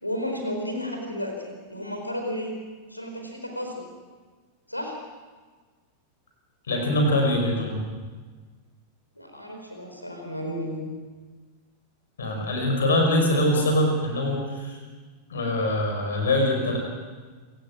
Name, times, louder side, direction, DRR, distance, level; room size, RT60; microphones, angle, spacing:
voice 1, 0.0-2.5 2.9-3.8 4.7-5.0 9.2-10.9, equal, 90° left, 3 dB, 4.6 m, -32 dB
voice 2, 6.7-7.9 12.2-14.8 15.3-16.8, left 1 dB, 65° left, 3 dB, 5.7 m, -23 dB
27.5 x 16.5 x 6.3 m, 1.4 s
figure-of-eight pair, 90°, 0 cm